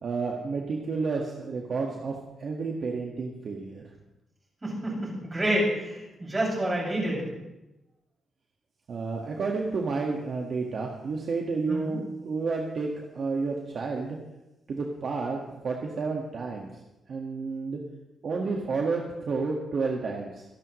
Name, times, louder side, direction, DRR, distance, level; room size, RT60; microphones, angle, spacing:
voice 1, 0.0-3.8 8.9-14.2 14.7-15.4 15.6-16.8 17.1-17.8 18.2-20.4, right 4 dB, 50° right, -1 dB, 1.8 m, -30 dB
voice 2, 4.6-7.3 11.7-12.0, right 1 dB, 20° right, -4 dB, 6.7 m, -28 dB
27.0 x 11.5 x 3.2 m, 0.97 s
cardioid pair, 135°, 0 cm